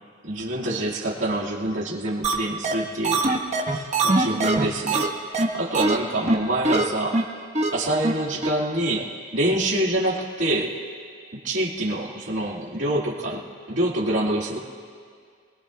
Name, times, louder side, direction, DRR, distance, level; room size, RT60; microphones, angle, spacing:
voice 1, 0.2-3.3 3.7-5.1 5.5-7.2 7.7-9.1 9.3-10.8 11.4-13.4 13.7-14.6, right 1 dB, 85° right, -5 dB, 2.0 m, -26 dB
sound 1, 2.2-2.3 2.6-2.7 3.0-5.1 5.3-5.5 5.7-5.9 6.3-6.4 6.6-6.8 7.1-7.2 7.5-7.7 8.0-8.1 8.4-8.5, right 2 dB, 35° right, 1.2 m, -21 dB
27.5 x 21.0 x 2.3 m, 2.1 s
head